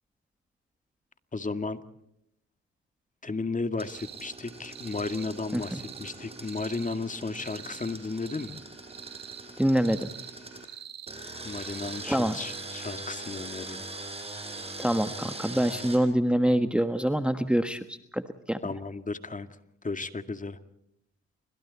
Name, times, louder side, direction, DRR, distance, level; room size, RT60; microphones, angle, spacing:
voice 1, 1.3-1.8 3.2-8.6 11.4-13.8 18.6-19.5 19.8-20.6, left 3 dB, 25° left, 9 dB, 2.1 m, -34 dB
Engine, 3.8-10.6 11.1-16.0, right 2 dB, 20° right, 5.8 m, -42 dB
sound 1, 3.9-4.3 4.7-5.3 5.6-6.1 6.4-7.0 7.3-8.0 8.2-8.6 8.9-9.4 9.8-10.3 10.6-11.1 11.5-12.1 12.4-12.6, right 9 dB, 60° right, 4.1 m, -45 dB
voice 2, 9.6-10.1 12.1-12.4 14.8-18.6, equal, 5° right, 9 dB, 1.4 m, -26 dB
29.0 x 25.5 x 4.2 m, 0.76 s
cardioid pair, 80°, 30 cm